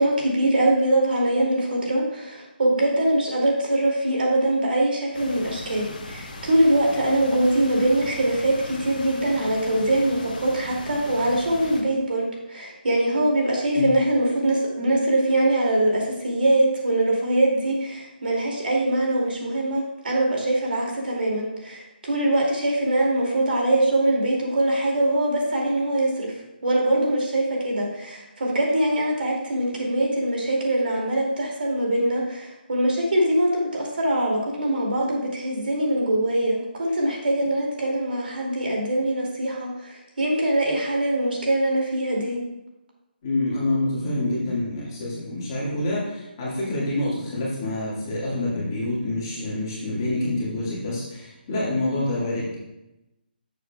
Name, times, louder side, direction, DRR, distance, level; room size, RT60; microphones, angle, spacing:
voice 1, 0.0-26.4 26.6-42.4, right 1 dB, 70° right, -1 dB, 2.5 m, -23 dB
sound 1, 5.1-11.8, left 2 dB, 50° left, 1.2 m, -38 dB
voice 2, 43.2-52.5, left 2 dB, 25° left, -7 dB, 2.0 m, -27 dB
10.5 x 6.8 x 2.4 m, 0.94 s
hypercardioid pair, 175°, 6 cm